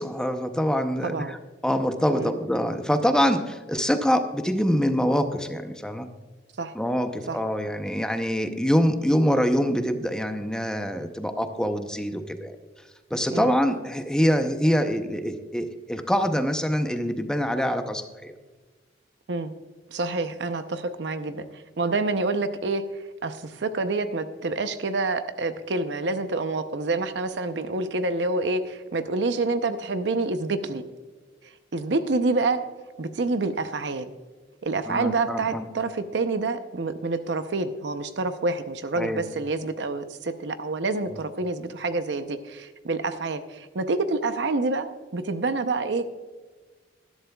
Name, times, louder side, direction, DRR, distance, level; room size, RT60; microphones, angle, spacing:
voice 1, 0.0-1.4 1.6-6.1 6.7-12.6 13.1-18.3 34.9-35.6 39.0-39.2, equal, 5° left, 7 dB, 0.6 m, -25 dB
voice 2, 1.0-1.3 2.1-2.4 6.6-6.7 7.3-7.4 13.3-13.5 19.3-19.5 19.9-30.8 31.4-32.6 33.0-34.1 34.6-46.0, right 3 dB, 70° right, 10 dB, 0.6 m, -27 dB
19.5 x 11.5 x 2.3 m, 1.4 s
head